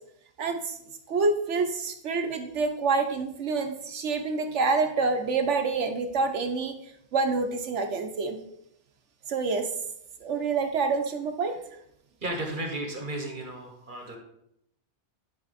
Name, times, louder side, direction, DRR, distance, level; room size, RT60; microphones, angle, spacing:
voice 1, 0.4-0.7 1.1-6.7 7.1-8.4 9.3-9.7 10.2-11.6, right 4 dB, 75° right, 6 dB, 1.2 m, -27 dB
voice 2, 12.2-14.2, right 1 dB, 45° right, 2 dB, 1.3 m, -34 dB
11.5 x 4.1 x 4.2 m, 0.74 s
omnidirectional pair, 1.2 m